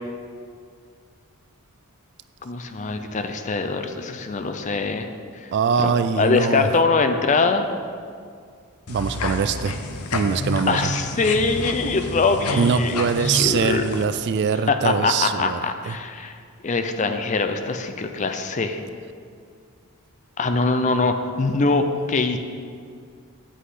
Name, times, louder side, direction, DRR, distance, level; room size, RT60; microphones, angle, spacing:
voice 1, 2.4-5.1 5.4-5.5 5.8-7.7 10.7-13.8 14.7-16.4 16.6-18.8 20.4-22.4, left 3 dB, 35° left, 7 dB, 0.5 m, -23 dB
voice 2, 5.5-6.7 8.9-9.8 10.1-10.9 12.5-15.6 15.9-16.0, right 6 dB, 50° right, 12 dB, 0.3 m, -22 dB
sound 1, 8.9-14.0, left 2 dB, 75° left, 0.7 m, -29 dB
8.2 x 8.2 x 3.8 m, 2.2 s
head